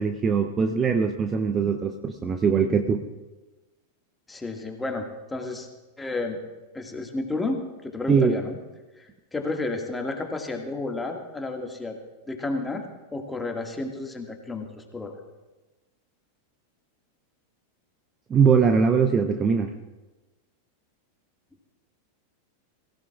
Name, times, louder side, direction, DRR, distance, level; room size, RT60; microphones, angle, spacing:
voice 1, 0.0-3.0 8.1-8.3 18.3-19.7, right 6 dB, 20° right, 7 dB, 0.8 m, -21 dB
voice 2, 4.3-5.7 6.0-6.4 6.7-8.6 9.0-12.0 12.3-12.8 13.1-15.1, left 2 dB, 10° left, 2 dB, 1.9 m, -31 dB
23.0 x 15.5 x 2.4 m, 1.1 s
figure-of-eight pair, 90°, 0 cm